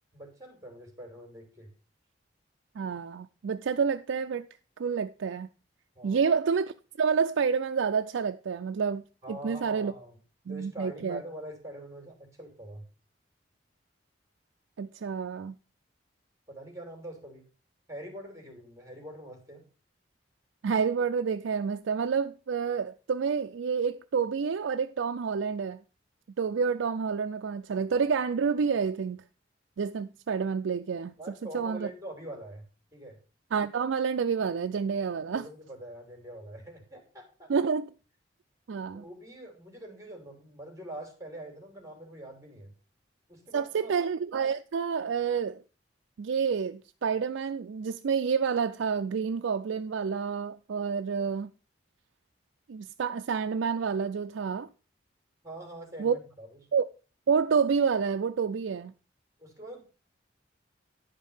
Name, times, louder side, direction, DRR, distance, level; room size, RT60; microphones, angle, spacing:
voice 1, 0.1-1.7 5.9-6.3 9.2-10.2 10.5-12.9 16.5-17.4 17.9-19.6 31.2-32.6 32.9-33.2 35.1-37.5 38.9-42.7 43.3-43.9 55.4-56.6 59.4-59.8, right 1 dB, 15° right, 3.0 m, -44 dB
voice 2, 2.8-4.5 4.8-5.5 6.0-9.9 10.5-11.2 14.8-15.5 20.6-25.8 26.4-29.2 29.8-31.1 31.5-31.9 33.5-35.5 37.5-37.9 38.7-39.0 43.5-45.6 46.2-51.5 52.7-54.7 56.0-56.2 56.7-56.9 57.3-58.9, right 6 dB, 90° right, 0.4 m, -29 dB
10.5 x 5.3 x 5.5 m
head